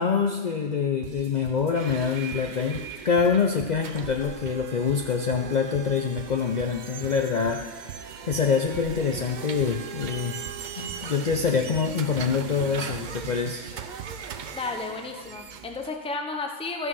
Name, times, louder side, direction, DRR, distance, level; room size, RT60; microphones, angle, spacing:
voice 1, 0.0-8.0 8.3-10.4 10.8-13.7, left 6 dB, 75° left, 3 dB, 0.4 m, -25 dB
sound 1, 1.0-14.6, right 8 dB, 65° right, 1.0 m, -42 dB
sound 2, 1.7-15.9, right 7 dB, 85° right, 0.4 m, -40 dB
voice 2, 14.5-16.9, left 3 dB, 10° left, 4 dB, 0.4 m, -32 dB
13.0 x 5.5 x 5.5 m, 1.3 s
omnidirectional pair, 1.5 m